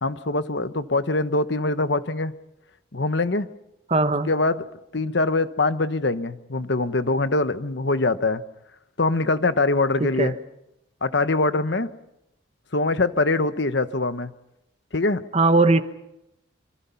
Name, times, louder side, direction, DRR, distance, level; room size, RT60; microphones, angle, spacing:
voice 1, 0.0-2.3 2.9-3.5 4.3-4.6 4.9-8.4 9.0-10.3 11.0-11.9 12.7-14.3 14.9-15.2, left 2 dB, 60° left, 11 dB, 1.1 m, -23 dB
voice 2, 3.9-4.3 10.0-10.3 15.3-15.8, right 3 dB, 30° right, 10 dB, 1.1 m, -19 dB
26.5 x 26.0 x 5.8 m, 0.85 s
head